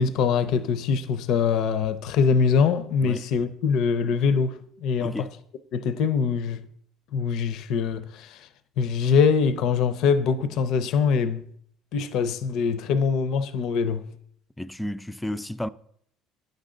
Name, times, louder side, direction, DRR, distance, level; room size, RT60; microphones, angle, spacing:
voice 1, 0.0-5.3 5.7-6.6 7.1-8.5 8.8-11.5 11.9-14.1, left 6 dB, 65° left, 0.5 m, -23 dB
voice 2, 5.0-5.3 14.6-15.7, left 1 dB, 5° left, 0.3 m, -32 dB
9.4 x 6.4 x 3.8 m
cardioid pair, 115°, 0 cm